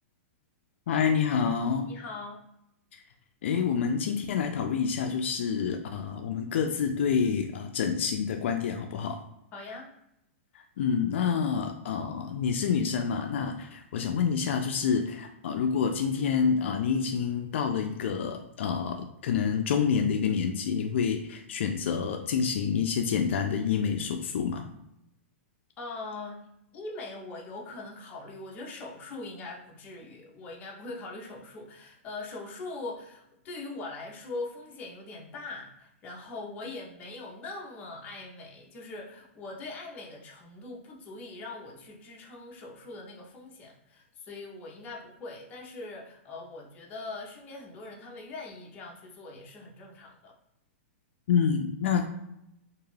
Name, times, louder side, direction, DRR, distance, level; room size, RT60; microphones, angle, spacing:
voice 1, 0.9-1.9 2.9-3.0 3.4-9.2 10.5-24.6 51.3-52.0, left 6 dB, 65° left, 4 dB, 0.3 m, -28 dB
voice 2, 1.8-2.4 9.5-9.9 25.8-26.4 26.7-50.4, left 3 dB, 20° left, -2 dB, 0.6 m, -41 dB
2.5 x 2.3 x 3.2 m, 0.82 s
hypercardioid pair, 160°, 7 cm